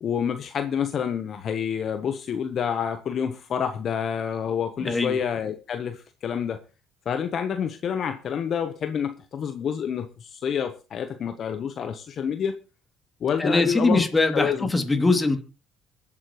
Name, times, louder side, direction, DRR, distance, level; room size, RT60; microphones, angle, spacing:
voice 1, 0.0-6.6 7.1-12.6 13.2-14.0 14.3-14.7, left 7 dB, 55° left, 8 dB, 1.0 m, -28 dB
voice 2, 4.8-5.2 13.4-15.4, left 2 dB, 20° left, 5 dB, 2.7 m, -22 dB
25.5 x 8.6 x 3.1 m, 0.33 s
supercardioid pair, 75°, 0 cm